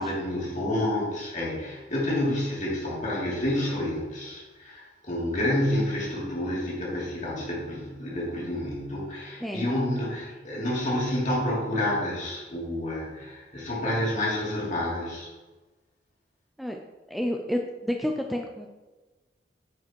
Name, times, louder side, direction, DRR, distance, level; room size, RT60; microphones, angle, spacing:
voice 1, 0.0-15.3, left 1 dB, 45° left, -5 dB, 2.8 m, -29 dB
voice 2, 17.1-18.7, equal, ahead, 2 dB, 0.5 m, -30 dB
9.3 x 4.9 x 4.6 m, 1.2 s
head